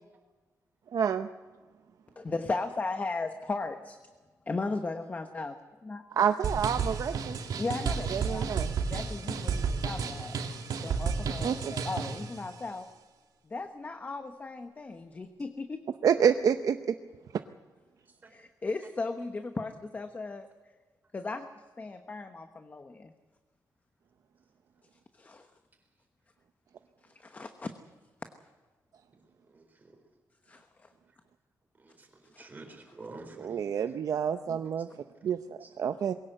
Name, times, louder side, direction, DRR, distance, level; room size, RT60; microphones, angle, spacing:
voice 1, 0.9-1.3 6.2-7.4 8.1-8.7 11.4-11.7 16.0-16.9 33.4-34.9 35.2-35.4 35.8-36.1, right 7 dB, 65° right, 0.7 m, -28 dB
voice 2, 2.2-4.0 4.5-5.6 5.8-6.0 7.6-10.4 10.8-12.9 13.4-15.8 18.3-20.5 21.1-21.5 21.8-23.1 25.1-25.5 27.0-27.7 30.5-30.9 32.3-32.5, left 3 dB, 25° left, 1.0 m, -36 dB
sound 1, 6.4-12.3, right 5 dB, 85° right, 2.3 m, -32 dB
voice 3, 31.8-33.6 35.6-35.7, right 2 dB, 25° right, 4.2 m, -48 dB
21.5 x 17.0 x 7.9 m
wide cardioid pair, 155°, 7 cm